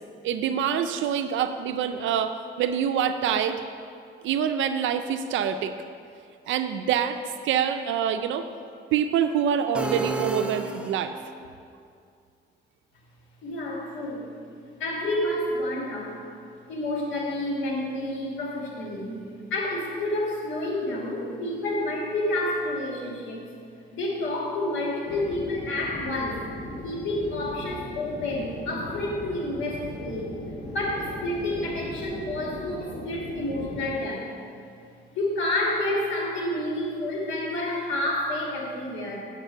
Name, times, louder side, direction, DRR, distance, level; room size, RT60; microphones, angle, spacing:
voice 1, 0.2-3.6 4.2-5.7 6.5-7.2 7.4-8.5 8.9-11.1, right 8 dB, 75° right, 9 dB, 0.4 m, -25 dB
sound 1, 9.7-11.3, right 2 dB, 5° right, 0.5 m, -31 dB
voice 2, 13.4-14.3 14.8-16.2 16.7-19.2 19.5-23.4 23.9-26.5 26.8-30.3 30.7-34.3 35.1-39.2, left 1 dB, 75° left, -2 dB, 2.1 m, -29 dB
sound 2, 25.1-33.9, left 1 dB, 55° left, 1.7 m, -38 dB
9.3 x 6.6 x 4.5 m, 2.3 s
cardioid pair, 90°, 20 cm